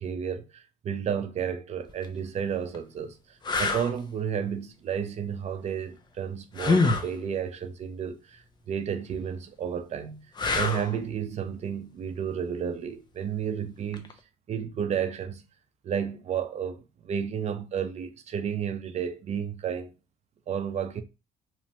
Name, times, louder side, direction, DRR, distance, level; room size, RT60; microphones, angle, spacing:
voice 1, 0.0-10.2 10.5-14.1 14.5-15.4 15.8-19.9 20.5-21.0, right 8 dB, 40° right, 0.5 m, -32 dB
sound 1, 1.9-2.1 2.7-2.8 3.4-3.9 6.6-7.1 10.4-11.0 13.9-14.1, left 3 dB, 25° left, 0.5 m, -25 dB
3.0 x 2.1 x 2.8 m
cardioid pair, 110°, 17 cm